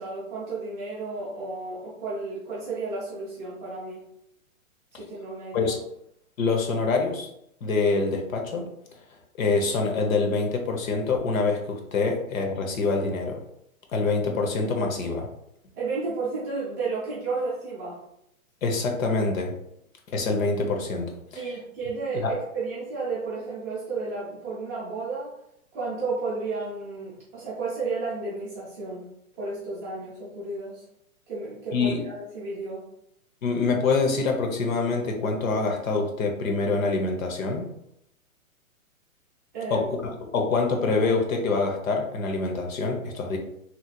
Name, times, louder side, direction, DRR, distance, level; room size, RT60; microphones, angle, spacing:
voice 1, 0.0-4.0 4.9-5.7 15.7-18.0 21.3-25.4 25.7-29.1 29.4-30.8 31.3-32.9 39.5-39.9, right 3 dB, 10° right, -8 dB, 0.5 m, -32 dB
voice 2, 6.4-7.3 7.6-8.7 9.4-13.4 13.9-15.3 18.6-19.6 20.1-21.5 22.2-22.4 31.7-32.0 33.4-37.6 39.7-43.4, left 3 dB, 70° left, 3 dB, 0.9 m, -25 dB
3.1 x 2.9 x 2.2 m, 0.76 s
hypercardioid pair, 145°, 43 cm